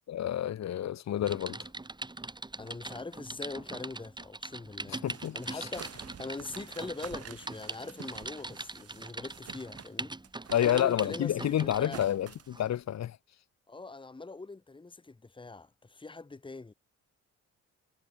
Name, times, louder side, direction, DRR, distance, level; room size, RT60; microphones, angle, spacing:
voice 1, 0.1-1.6 4.9-5.4 10.5-13.2, left 11 dB, 60° left, 1.8 m, -29 dB
Typing, 1.2-12.0 12.5-12.7, right 2 dB, 15° right, 5.2 m, -42 dB
voice 2, 2.6-5.0 5.3-10.1 10.5-12.1 13.7-16.7, left 3 dB, 15° left, 1.8 m, -42 dB
sound 1, 5.0-10.0 10.2-12.5, right 8 dB, 50° right, 4.7 m, -49 dB
cardioid pair, 90°, 30 cm